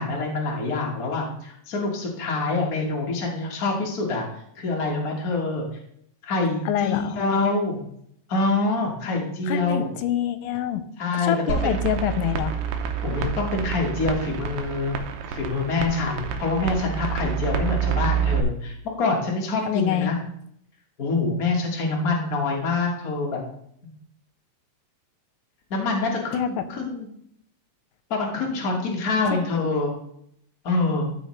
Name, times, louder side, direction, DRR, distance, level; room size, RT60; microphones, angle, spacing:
voice 1, 0.0-4.3 4.5-5.6 6.2-7.8 8.3-9.9 11.0-11.8 13.0-14.9 15.3-20.2 21.0-23.4 25.7-27.1 28.1-29.9 30.6-31.1, left 3 dB, 65° left, -1 dB, 0.8 m, -25 dB
voice 2, 6.7-7.2 9.5-10.8 11.2-12.5 19.7-20.1 26.4-26.6 29.3-29.4, left 11 dB, 90° left, 10 dB, 2.4 m, -26 dB
sound 1, 11.5-18.4, right 7 dB, 80° right, 2.3 m, -28 dB
14.0 x 4.8 x 3.1 m, 0.70 s
omnidirectional pair, 4.0 m